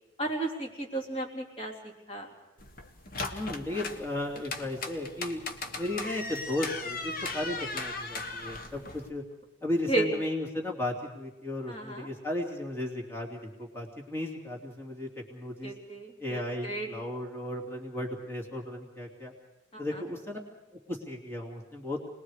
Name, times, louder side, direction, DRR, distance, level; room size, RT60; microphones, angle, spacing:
voice 1, 0.2-2.3 9.9-10.1 11.7-12.1 15.6-16.9 19.7-20.0, right 2 dB, 30° left, 1 dB, 3.5 m, -34 dB
sound 1, 2.6-9.1, left 3 dB, 50° left, 1.5 m, -38 dB
voice 2, 3.3-5.4 5.8-9.2 9.6-15.8 16.2-19.3 19.8-20.4 20.9-22.0, left 1 dB, 15° left, -1 dB, 2.9 m, -35 dB
29.0 x 21.0 x 5.0 m, 1.1 s
head